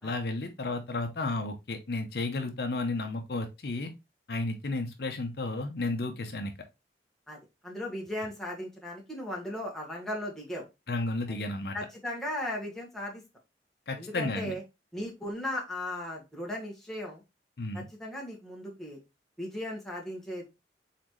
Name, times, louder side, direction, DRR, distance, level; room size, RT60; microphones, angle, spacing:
voice 1, 0.0-3.9 4.3-6.5 10.9-11.7 13.9-14.5 17.6-17.9, left 2 dB, 60° left, 5 dB, 0.7 m, -32 dB
voice 2, 7.6-10.6 11.7-13.2 14.0-14.6 14.9-17.2 17.7-19.0 19.4-20.4, left 1 dB, ahead, -3 dB, 1.4 m, -37 dB
4.1 x 4.0 x 3.1 m, 0.23 s
head